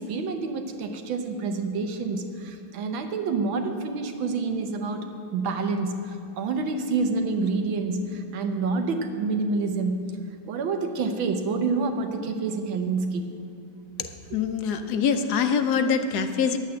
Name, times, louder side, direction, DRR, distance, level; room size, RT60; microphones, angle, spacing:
voice 1, 0.0-5.1 5.3-10.1 10.5-13.3 14.3-14.4, right 4 dB, 90° right, 6 dB, 1.7 m, -28 dB
voice 2, 14.3-16.6, left 6 dB, 65° left, 8 dB, 1.1 m, -24 dB
10.5 x 8.3 x 7.6 m, 2.5 s
omnidirectional pair, 2.1 m